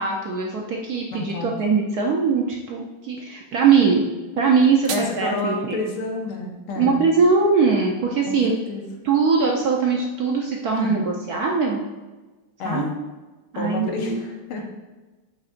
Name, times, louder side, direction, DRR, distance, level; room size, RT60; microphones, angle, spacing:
voice 1, 0.0-4.1 4.4-5.8 6.8-8.5 9.0-11.8 12.6-12.9 13.5-14.2, right 5 dB, 65° right, -1 dB, 1.0 m, -21 dB
voice 2, 1.1-1.5 4.9-7.1 8.3-8.4 8.7-8.8 10.8-11.0 12.6-13.0 13.6-14.6, left 3 dB, 80° left, 1 dB, 1.9 m, -29 dB
sound 1, 4.4-5.4, right 8 dB, 85° right, 1.5 m, -35 dB
8.5 x 6.2 x 2.5 m, 1.2 s
omnidirectional pair, 2.3 m